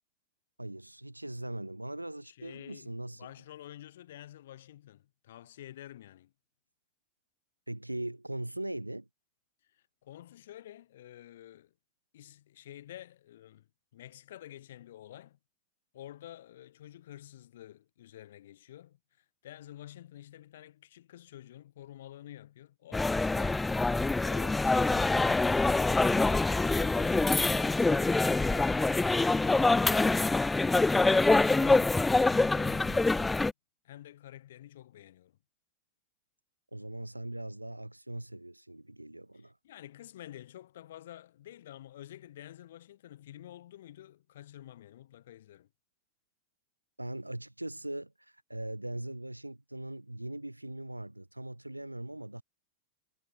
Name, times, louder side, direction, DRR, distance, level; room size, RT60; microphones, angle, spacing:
voice 1, 0.6-3.3 7.7-9.1 36.7-39.5 47.0-52.4, right 1 dB, 85° right, 2.7 m, -40 dB
voice 2, 2.2-6.3 9.6-11.7 12.1-13.7 13.9-15.4 15.9-23.6 33.8-35.4 39.6-45.7, left 12 dB, 60° left, 6.0 m, -50 dB
sound 1, 22.9-33.5, left 3 dB, 10° left, 0.3 m, -25 dB
figure-of-eight pair, 90°, 0 cm